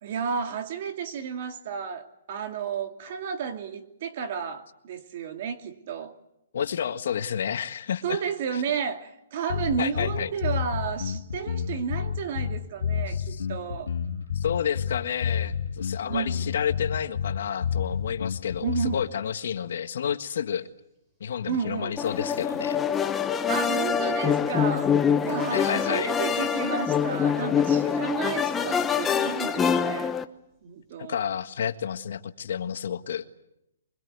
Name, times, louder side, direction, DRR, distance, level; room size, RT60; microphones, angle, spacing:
voice 1, 0.0-6.2 8.0-13.9 16.0-16.5 18.6-19.0 21.5-22.0 23.5-25.0 25.2-30.2 30.6-31.2, right 7 dB, 45° right, 2.6 m, -32 dB
voice 2, 6.5-8.2 8.5-8.6 9.8-10.3 13.1-13.5 14.3-20.7 21.2-23.0 25.5-26.1 31.0-33.2, left 8 dB, 65° left, 1.6 m, -30 dB
sound 1, 9.5-19.1, left 7 dB, 85° left, 2.3 m, -30 dB
sound 2, 17.5-17.6 17.9-18.2 18.5-18.9 19.4-20.6 20.9-21.0 21.6-21.7 22.2-22.3 22.6-22.7 23.1-23.9 24.2-29.9 30.1-30.6, equal, 15° right, 4.6 m, -50 dB
sound 3, 22.0-30.2, left 7 dB, 10° left, 0.9 m, -25 dB
24.0 x 21.5 x 9.5 m
hypercardioid pair, 160°, 0 cm